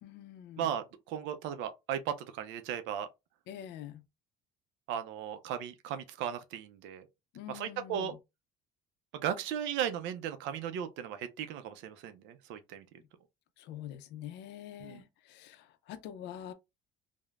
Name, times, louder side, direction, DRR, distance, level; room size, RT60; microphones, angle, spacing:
voice 1, 0.0-0.7 3.5-4.0 7.3-8.2 13.6-16.5, left 10 dB, 70° left, 0.4 m, -45 dB
voice 2, 0.6-3.1 4.9-7.0 7.5-8.2 9.1-12.8 14.8-15.0, right 9 dB, 80° right, 0.4 m, -36 dB
3.1 x 2.0 x 2.3 m
cardioid pair, 130°, 19 cm